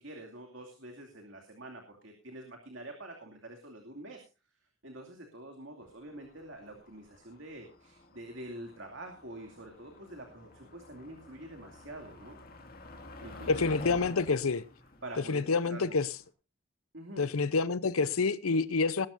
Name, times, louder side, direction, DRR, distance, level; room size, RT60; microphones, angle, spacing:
voice 1, 0.0-4.2 4.8-12.4 13.2-13.7 14.2-14.3 15.0-16.0 16.9-17.2, right 1 dB, 60° right, 2.6 m, -46 dB
Motor vehicle (road), 5.9-16.2, left 2 dB, 45° left, 2.3 m, -50 dB
voice 2, 13.5-14.6 15.3-16.1 17.2-19.1, left 4 dB, 85° left, 0.7 m, -28 dB
20.0 x 12.0 x 2.6 m
head